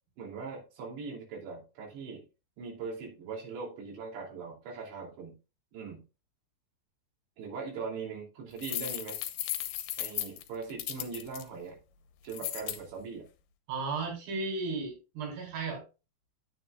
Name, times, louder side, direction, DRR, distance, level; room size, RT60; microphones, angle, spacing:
voice 1, 0.2-2.3 2.6-5.3 5.7-6.0 7.4-9.2 10.0-11.8 12.2-13.3, right 5 dB, 85° right, -2 dB, 5.2 m, -40 dB
sound 1, 8.6-11.4 12.3-12.8, left 13 dB, 75° left, 2.7 m, -35 dB
voice 2, 13.7-15.8, right 3 dB, 70° right, -1 dB, 6.2 m, -34 dB
10.0 x 9.4 x 2.4 m, 0.30 s
omnidirectional pair, 4.9 m